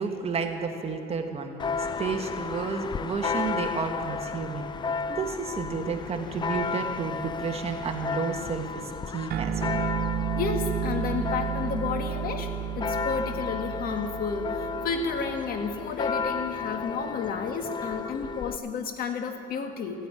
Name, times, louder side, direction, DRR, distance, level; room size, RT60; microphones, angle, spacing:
voice 1, 0.0-4.7 5.1-8.8 9.1-9.8, right 5 dB, 35° right, 4 dB, 1.6 m, -31 dB
Church bell, 1.6-18.6, left 5 dB, 25° left, 0.4 m, -33 dB
sound 1, 9.3-16.1, right 8 dB, 70° right, 0.8 m, -32 dB
voice 2, 10.4-20.1, left 5 dB, 60° left, 5 dB, 1.8 m, -31 dB
15.5 x 10.0 x 9.0 m, 2.9 s
cardioid pair, 110°, 17 cm